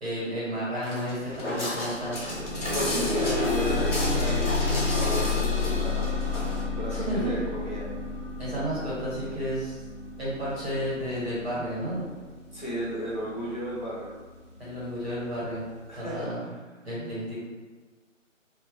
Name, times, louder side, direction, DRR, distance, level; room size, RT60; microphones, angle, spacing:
voice 1, 0.0-2.2 6.9-7.4 8.4-9.8 10.2-12.1 14.6-16.5 16.8-17.4, equal, 50° right, -9 dB, 1.5 m, -32 dB
Walk footsteps, 0.8-6.6, left 1 dB, 65° left, 0.9 m, -34 dB
sound 1, 1.3-1.4 1.7-12.7 13.5-13.6 14.1-14.2, left 3 dB, 30° right, 0.9 m, -30 dB
voice 2, 2.7-6.1 6.8-7.9 12.5-14.1 15.9-16.3, right 1 dB, 35° left, -7 dB, 0.6 m, -34 dB
2.8 x 2.1 x 2.5 m, 1.3 s
figure-of-eight pair, 175°, 40 cm